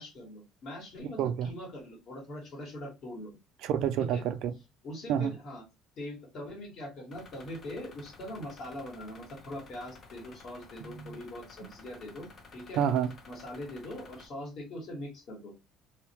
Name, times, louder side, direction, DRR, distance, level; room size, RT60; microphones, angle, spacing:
voice 1, 0.0-3.4 4.0-4.2 4.8-5.6 6.0-12.8 13.3-15.5, left 1 dB, 55° left, 1.6 m, -42 dB
voice 2, 1.2-1.5 3.6-4.5 5.1-5.3 10.8-11.2 12.8-13.1, right 9 dB, 70° right, 0.3 m, -29 dB
sound 1, 7.1-14.3, left 3 dB, 35° left, 0.8 m, -53 dB
2.8 x 2.1 x 2.9 m
cardioid pair, 130°, 0 cm